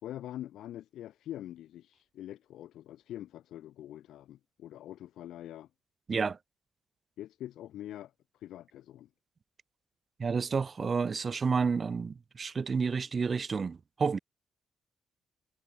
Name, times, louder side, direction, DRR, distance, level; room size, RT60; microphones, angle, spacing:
voice 1, 0.0-5.7 7.2-9.1, left 12 dB, 85° left, 3.8 m, -44 dB
voice 2, 10.2-14.2, right 5 dB, 45° right, 2.9 m, -30 dB
cardioid pair, 75°, 0 cm